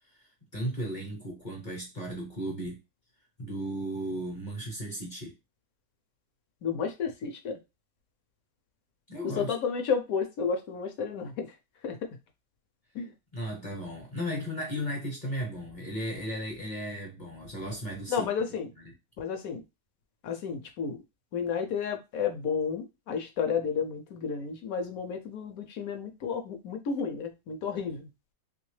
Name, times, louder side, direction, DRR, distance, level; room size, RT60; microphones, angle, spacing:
voice 1, 0.0-2.8 3.4-5.3 9.1-9.5 13.3-18.3, equal, 40° left, 0 dB, 0.7 m, -35 dB
voice 2, 6.6-7.6 9.4-11.6 11.8-12.0 12.9-13.1 18.1-18.7 19.2-19.6 20.2-21.0 21.3-28.1, left 6 dB, 70° left, 5 dB, 0.9 m, -32 dB
3.0 x 2.8 x 3.1 m, 0.25 s
omnidirectional pair, 1.8 m